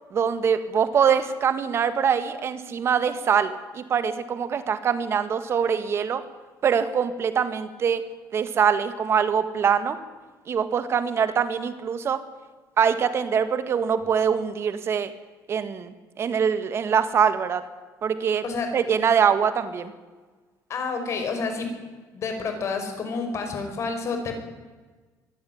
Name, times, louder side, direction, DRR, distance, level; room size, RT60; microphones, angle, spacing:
voice 1, 0.1-6.2 6.6-8.1 8.3-10.0 10.5-12.2 12.8-15.1 15.5-17.6 18.0-18.4 18.7-19.9, right 7 dB, 35° right, 11 dB, 1.9 m, -23 dB
voice 2, 20.7-21.7 22.1-24.4, left 4 dB, 40° left, 5 dB, 5.3 m, -29 dB
24.0 x 16.5 x 9.5 m, 1.3 s
cardioid pair, 165°, 7 cm